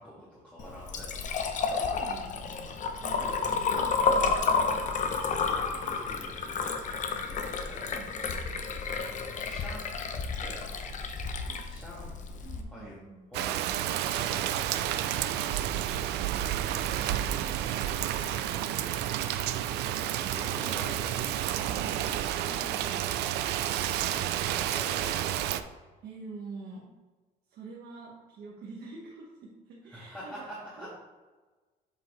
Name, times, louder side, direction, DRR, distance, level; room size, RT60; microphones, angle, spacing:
voice 1, 0.0-2.3 3.6-3.8 5.5-8.0 8.9-10.1 10.4-12.1 12.7-13.0 13.3-15.9 20.3-21.2 24.5-25.6 29.9-30.9, equal, 10° left, -9 dB, 1.8 m, -47 dB
Liquid, 0.6-12.6, left 5 dB, 50° left, 0.7 m, -31 dB
voice 2, 1.8-5.9 7.0-7.6 7.8-8.6 10.0-10.5 11.5-11.6 12.4-13.3 20.7-20.9 21.4-24.5 26.0-26.9 27.5-30.3 30.8-30.9, right 3 dB, 65° right, -4 dB, 1.4 m, -48 dB
Rain, 13.3-25.6, right 11 dB, 85° right, 0.4 m, -30 dB
7.6 x 4.6 x 3.2 m, 1.3 s
cardioid pair, 110°, 17 cm